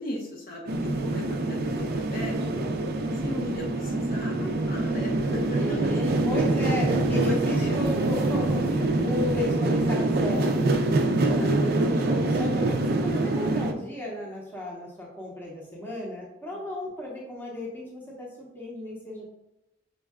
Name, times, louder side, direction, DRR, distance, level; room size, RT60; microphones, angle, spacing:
voice 1, 0.0-2.6 3.2-6.7 7.2-7.8 11.2-11.6, equal, 40° left, -1 dB, 0.7 m, -37 dB
sound 1, 0.7-13.7, right 2 dB, 45° right, 0.4 m, -25 dB
voice 2, 5.5-10.7 11.0-19.3, left 1 dB, 10° left, -4 dB, 0.7 m, -34 dB
5.3 x 2.2 x 3.5 m, 0.89 s
head